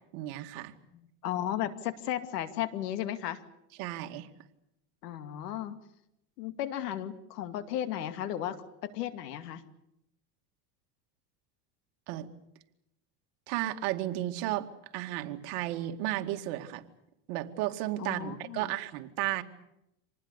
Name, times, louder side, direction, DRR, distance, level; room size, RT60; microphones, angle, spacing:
voice 1, 0.1-0.7 3.8-4.3 12.1-12.3 13.5-14.7 14.9-16.8 17.3-19.4, right 15 dB, 65° right, 6 dB, 2.3 m, -33 dB
voice 2, 0.9-3.4 5.0-5.8 6.4-9.6 18.0-18.7, left 11 dB, 85° left, 10 dB, 2.4 m, -35 dB
26.0 x 19.5 x 8.3 m, 0.84 s
supercardioid pair, 135°, 46 cm